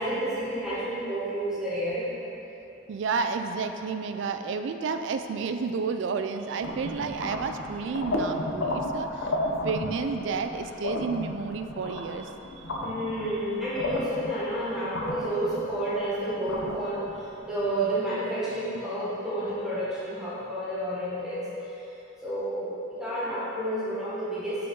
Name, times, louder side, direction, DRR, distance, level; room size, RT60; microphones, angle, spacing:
voice 1, 0.0-2.3 12.8-21.5 22.2-24.7, right 1 dB, 5° right, -11 dB, 1.3 m, -30 dB
voice 2, 2.9-9.3 9.6-12.8, right 5 dB, 70° right, 8 dB, 0.3 m, -31 dB
sound 1, 6.6-17.7, left 1 dB, 90° left, 0.7 m, -33 dB
6.1 x 4.9 x 3.8 m, 3.0 s
head